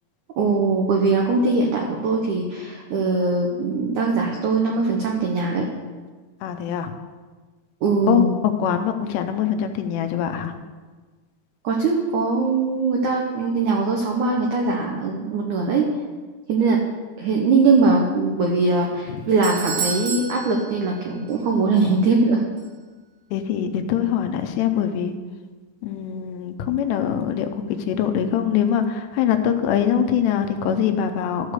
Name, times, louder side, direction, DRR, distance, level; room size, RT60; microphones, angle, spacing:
voice 1, 0.4-5.7 7.8-8.3 11.6-15.9 16.5-16.8 17.2-22.4, right 3 dB, 85° right, 0 dB, 1.7 m, -21 dB
voice 2, 6.4-6.9 8.1-10.6 19.1-19.2 23.3-25.1 25.8-31.5, left 9 dB, 85° left, 7 dB, 2.8 m, -23 dB
Doorbell, 19.0-21.5 21.7-21.8 22.6-22.7, right 5 dB, 65° right, 3.0 m, -31 dB
13.0 x 4.8 x 6.7 m, 1.3 s
omnidirectional pair, 4.9 m